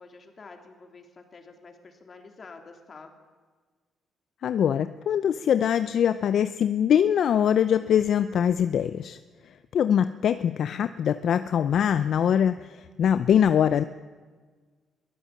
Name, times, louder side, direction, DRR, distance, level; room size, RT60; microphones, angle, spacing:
voice 1, 0.0-3.1, left 4 dB, 40° left, 4 dB, 3.4 m, -48 dB
voice 2, 4.4-9.2 9.4-13.8, left 9 dB, 65° left, 12 dB, 0.6 m, -23 dB
22.5 x 14.5 x 8.6 m, 1.4 s
cardioid pair, 90°, 0 cm